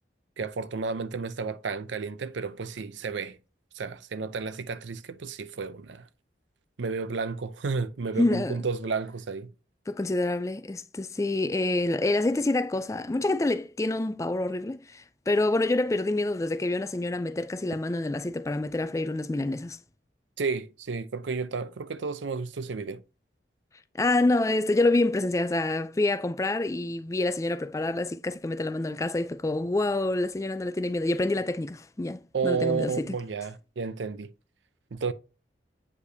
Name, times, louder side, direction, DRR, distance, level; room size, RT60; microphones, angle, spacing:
voice 1, 0.4-3.4 3.7-6.1 6.8-9.5 20.4-23.0 32.3-34.3 34.9-35.1, right 4 dB, 90° right, 0.5 m, -32 dB
voice 2, 8.2-8.6 9.9-19.8 24.0-33.1, left 2 dB, 15° left, 0.3 m, -27 dB
8.4 x 5.0 x 2.7 m
head